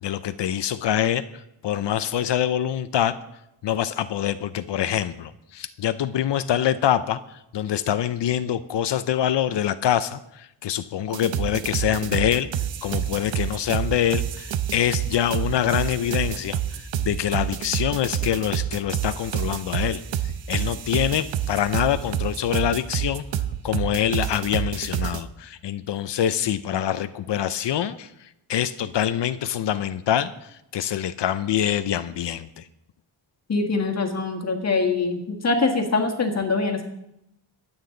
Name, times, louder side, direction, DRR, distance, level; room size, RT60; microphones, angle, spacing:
voice 1, 0.0-3.2 3.6-12.5 12.8-20.0 20.5-23.2 23.6-32.7, left 10 dB, 65° left, 13 dB, 0.6 m, -25 dB
sound 1, 11.1-25.2, right 10 dB, 70° right, 0.8 m, -28 dB
voice 2, 33.5-36.9, left 3 dB, 35° left, 2 dB, 1.7 m, -23 dB
22.5 x 8.9 x 3.9 m, 0.83 s
wide cardioid pair, 165°, 46 cm